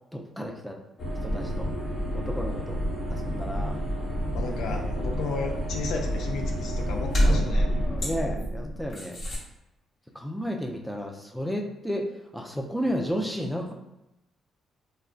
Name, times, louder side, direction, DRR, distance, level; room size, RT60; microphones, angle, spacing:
voice 1, 0.1-0.8 1.2-1.7 2.1-2.8 3.1-3.8 4.8-5.2 8.0-9.2 10.1-13.7, equal, ahead, 1 dB, 0.5 m, -32 dB
sound 1, 1.0-9.4, equal, 50° left, 0.9 m, -28 dB
voice 2, 4.3-7.7, left 4 dB, 80° left, 1 dB, 0.5 m, -34 dB
2.3 x 2.2 x 3.7 m, 0.90 s
cardioid pair, 90°, 0 cm